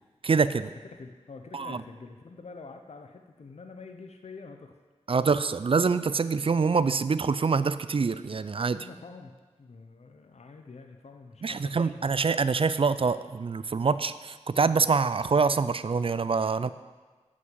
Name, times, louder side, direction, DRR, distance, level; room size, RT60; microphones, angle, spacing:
voice 1, 0.2-0.7 1.5-1.8 5.1-8.9 11.4-16.7, right 5 dB, 50° right, 14 dB, 0.5 m, -25 dB
voice 2, 0.8-4.7 8.8-9.3 9.6-12.3, left 4 dB, 60° left, 5 dB, 0.8 m, -46 dB
7.9 x 6.2 x 7.5 m, 1.3 s
cardioid pair, 40°, 12 cm